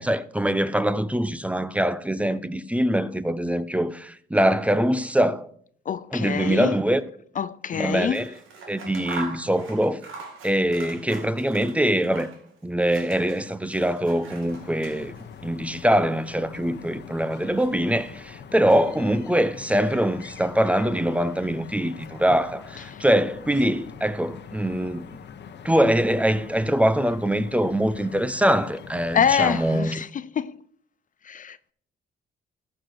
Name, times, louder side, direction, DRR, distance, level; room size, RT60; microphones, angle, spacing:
voice 1, 0.0-5.5 6.1-7.0 7.7-8.3 8.7-10.0 10.4-12.3 12.6-15.1 15.4-25.1 25.6-30.1, right 1 dB, 5° right, 0.6 m, -23 dB
voice 2, 5.9-6.8 7.4-8.2 22.9-23.0 29.1-30.6 31.2-31.7, left 7 dB, 40° left, 0.4 m, -25 dB
Scissors, 8.0-12.5 12.8-15.4, right 3 dB, 85° right, 2.3 m, -41 dB
sound 1, 14.5-29.8, left 7 dB, 60° left, 1.0 m, -43 dB
14.0 x 4.8 x 6.0 m
cardioid pair, 90°, 20 cm